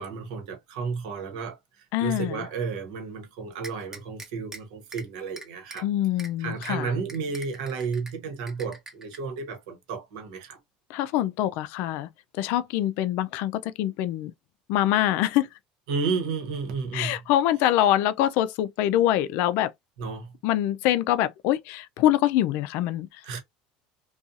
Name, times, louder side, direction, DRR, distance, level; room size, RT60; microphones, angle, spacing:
voice 1, 0.0-5.9 6.4-10.6 15.9-17.2 20.0-20.4 23.2-23.4, right 5 dB, 80° right, 1.0 m, -32 dB
voice 2, 1.9-2.4 5.8-6.9 10.9-12.1 12.4-14.3 14.7-15.5 16.9-19.7 20.4-23.2, left 13 dB, 70° left, 0.4 m, -24 dB
sound 1, 3.6-4.6 4.9-5.0 5.4-5.8 6.2-6.3 6.6-6.7 7.1-8.1 8.5-9.2, right 2 dB, 15° right, 0.8 m, -41 dB
2.7 x 2.3 x 2.4 m
supercardioid pair, 95°, 3 cm